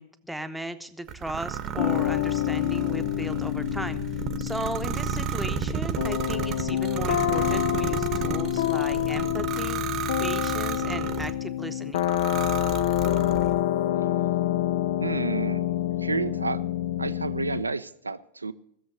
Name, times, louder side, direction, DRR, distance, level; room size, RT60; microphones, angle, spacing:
voice 1, 0.0-4.0 4.4-9.8 10.2-12.1, right 1 dB, 5° right, 8 dB, 0.9 m, -36 dB
sound 1, 1.1-11.4 12.0-13.6, right 9 dB, 35° right, 1.0 m, -33 dB
sound 2, 1.8-17.6, left 12 dB, 55° left, 0.5 m, -27 dB
voice 2, 15.0-15.7 16.0-16.6 17.0-18.5, right 4 dB, 80° right, 15 dB, 0.6 m, -30 dB
16.5 x 7.3 x 7.9 m, 0.70 s
figure-of-eight pair, 90°, 0 cm